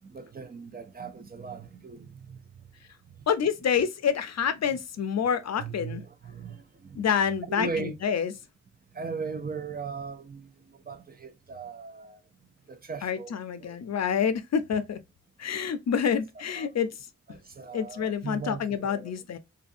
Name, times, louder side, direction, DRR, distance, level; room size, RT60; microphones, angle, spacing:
voice 1, 0.1-2.4 5.6-7.0 7.5-8.0 8.9-10.5 10.9-12.2 12.7-13.8 16.6-16.7 17.3-19.1, right 5 dB, 30° right, 0.5 m, -38 dB
voice 2, 3.3-6.0 7.0-8.3 13.0-15.0 15.4-16.9 17.7-19.4, left 7 dB, 55° left, 0.5 m, -27 dB
2.6 x 2.4 x 2.5 m
wide cardioid pair, 80°, 32 cm